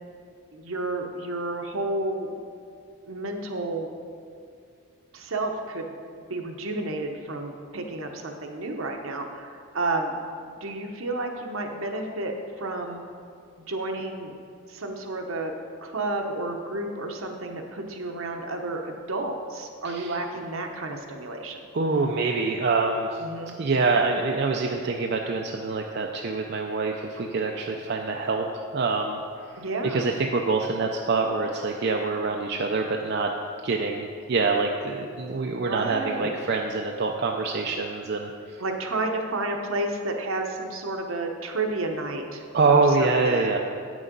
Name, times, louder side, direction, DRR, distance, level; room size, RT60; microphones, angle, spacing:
voice 1, 0.5-2.3 3.1-3.9 5.1-6.0 6.3-10.1 10.6-13.0 13.7-14.3 14.7-15.5 15.8-21.6 23.2-23.5 29.6-30.1 35.5-36.4 38.6-43.6, right 2 dB, 70° right, 3 dB, 0.9 m, -31 dB
voice 2, 19.8-20.2 21.7-23.2 23.6-29.2 29.9-33.3 33.6-38.3 42.5-43.6, right 3 dB, 50° right, 2 dB, 0.4 m, -25 dB
8.7 x 6.3 x 5.3 m, 2.3 s
head